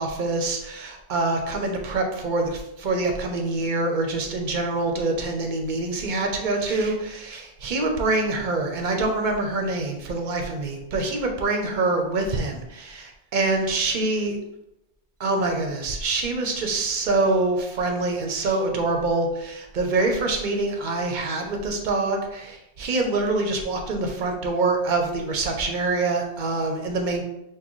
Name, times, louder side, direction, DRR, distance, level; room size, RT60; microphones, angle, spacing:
voice 1, 0.0-14.4 15.2-27.2, right 3 dB, 50° right, 3 dB, 0.7 m, -25 dB
6.2 x 2.2 x 3.0 m, 0.87 s
omnidirectional pair, 1.1 m